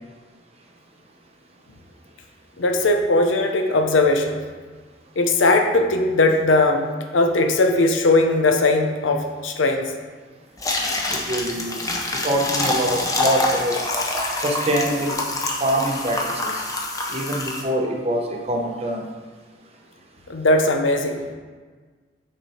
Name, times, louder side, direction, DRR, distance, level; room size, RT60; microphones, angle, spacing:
voice 1, 2.6-4.4 5.2-6.9 7.1-9.9 20.3-21.2, left 2 dB, 85° left, 4 dB, 0.7 m, -19 dB
sound 1, 10.6-17.6, left 2 dB, 20° left, 0.7 m, -26 dB
voice 2, 11.1-11.8 12.2-13.8 14.4-15.2 15.6-16.6 17.1-19.0, right 1 dB, 35° right, 1 dB, 0.8 m, -24 dB
6.0 x 4.4 x 4.3 m, 1.5 s
head